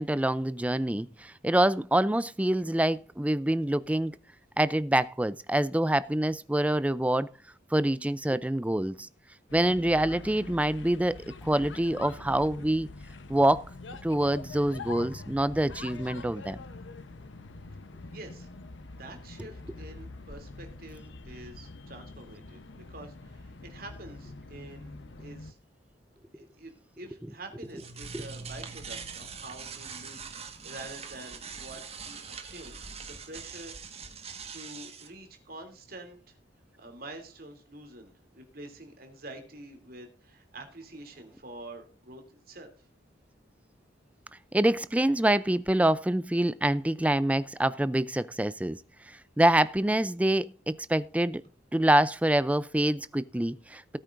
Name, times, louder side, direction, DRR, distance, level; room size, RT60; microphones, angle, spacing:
voice 1, 0.0-4.2 4.6-7.3 7.7-9.1 9.5-11.2 11.4-12.9 13.3-13.6 14.0-16.6 28.1-28.2 44.5-48.8 49.4-51.4 51.7-54.0, right 1 dB, 10° right, 0.4 m, -26 dB
sound 1, 9.5-25.5, left 3 dB, 85° left, 0.9 m, -44 dB
voice 2, 18.1-18.5 19.0-25.6 26.3-34.0 34.5-36.4 36.8-42.7, right 2 dB, 55° right, 2.9 m, -47 dB
sound 2, 27.5-35.1, right 5 dB, 35° right, 1.5 m, -42 dB
18.5 x 8.9 x 2.6 m
head